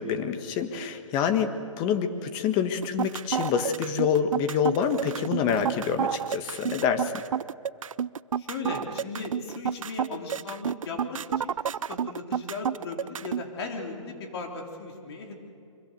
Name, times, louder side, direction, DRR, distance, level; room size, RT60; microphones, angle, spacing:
voice 1, 0.0-7.2, left 7 dB, 25° left, 8 dB, 1.6 m, -27 dB
sound 1, 2.8-13.4, right 8 dB, 80° right, 0.5 m, -30 dB
voice 2, 8.4-11.5 11.9-15.4, left 3 dB, 50° left, 2 dB, 3.7 m, -37 dB
24.5 x 23.0 x 6.8 m, 2.4 s
hypercardioid pair, 140°, 17 cm